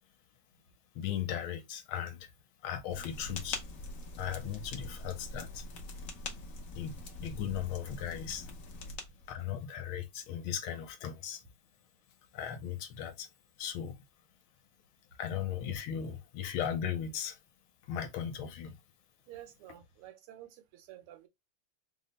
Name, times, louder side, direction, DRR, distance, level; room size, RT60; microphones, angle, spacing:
voice 1, 0.9-2.3 2.6-3.6 4.2-5.6 6.7-7.0 7.2-8.5 9.3-11.4 12.3-13.3 13.6-14.0 15.2-17.4 17.8-18.8, left 9 dB, 80° left, 1.5 m, -37 dB
sound 1, 2.9-9.4, left 2 dB, 65° left, 0.8 m, -43 dB
voice 2, 19.3-21.3, right 12 dB, 85° right, 1.7 m, -51 dB
3.9 x 2.1 x 3.8 m
omnidirectional pair, 2.4 m